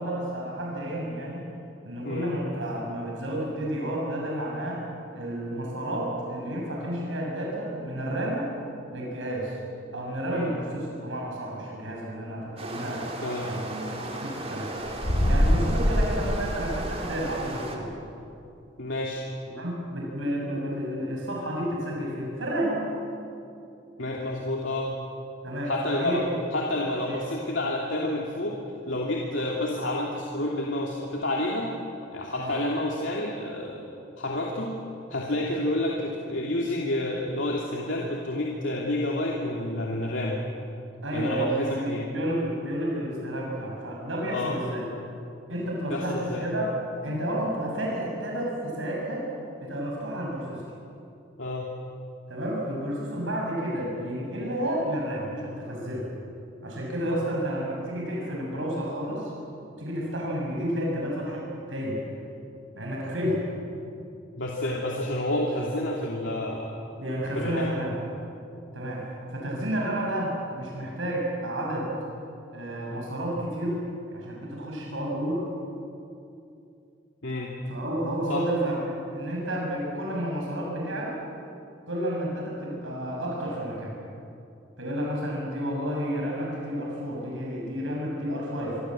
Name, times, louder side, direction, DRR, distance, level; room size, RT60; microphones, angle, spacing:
voice 1, 0.0-1.5 1.9-4.8 5.1-8.5 8.9-9.6 9.9-13.1 13.4-14.7 15.3-17.9 19.5-22.8 25.4-26.3 27.0-27.2 32.4-32.6 41.0-44.8 45.5-46.7 47.0-49.2 49.6-50.6 52.3-56.1 56.6-59.3 59.8-62.0 62.8-63.4 67.0-67.9 68.7-71.9 72.5-73.8 74.1-75.4 77.7-81.2 81.9-83.9 84.8-88.8, right 1 dB, 85° right, -3 dB, 6.9 m, -31 dB
sound 1, 12.6-17.8, right 1 dB, 35° right, 3.6 m, -36 dB
sound 2, 14.9-17.3, equal, 55° left, 2.8 m, -24 dB
voice 2, 18.8-19.2 24.0-24.9 25.7-26.2 26.5-31.7 32.1-33.9 34.2-34.7 35.1-40.4 41.1-42.1 44.3-44.6 45.9-46.4 51.4-51.7 64.4-66.7 67.4-67.6 77.2-77.5 78.3-78.4, left 1 dB, 75° left, -2 dB, 2.8 m, -29 dB
25.5 x 25.0 x 7.7 m, 2.6 s
head